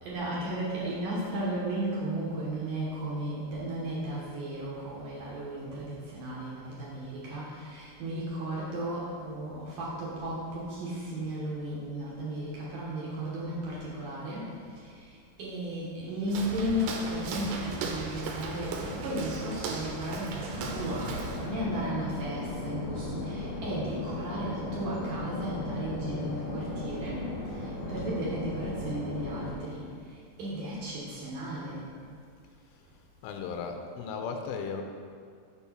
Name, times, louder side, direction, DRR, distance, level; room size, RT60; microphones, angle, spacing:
voice 1, 0.0-31.9, right 1 dB, 65° right, -7 dB, 2.3 m, -35 dB
Walk footsteps, 16.3-21.5, right 4 dB, 90° right, 2.9 m, -37 dB
sound 1, 20.5-29.6, left 2 dB, 70° left, 1.5 m, -36 dB
voice 2, 33.2-34.8, left 5 dB, 90° left, 4 dB, 2.8 m, -35 dB
7.0 x 4.5 x 5.7 m, 2.2 s
omnidirectional pair, 5.0 m